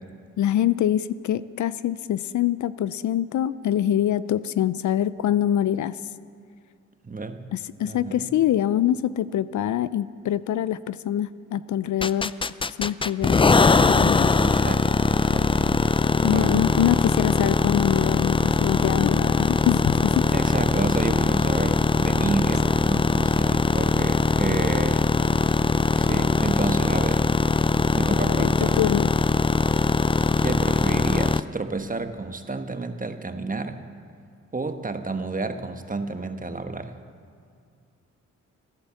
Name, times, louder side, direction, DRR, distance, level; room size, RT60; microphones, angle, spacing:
voice 1, 0.4-6.0 7.5-12.3 12.7-13.5 13.9-14.3 16.2-20.2 28.3-29.1, left 11 dB, 70° left, 16 dB, 0.5 m, -24 dB
voice 2, 7.0-7.5 7.8-8.3 14.4-15.9 16.2-16.7 20.3-25.1 25.4-25.7 25.9-27.3 27.9-28.9 30.4-33.8 34.5-37.0, right 3 dB, 25° right, 7 dB, 1.2 m, -31 dB
sound 1, 12.0-31.4, left 4 dB, 20° left, 0.4 m, -21 dB
14.5 x 11.5 x 7.1 m, 2.3 s
cardioid pair, 55°, 30 cm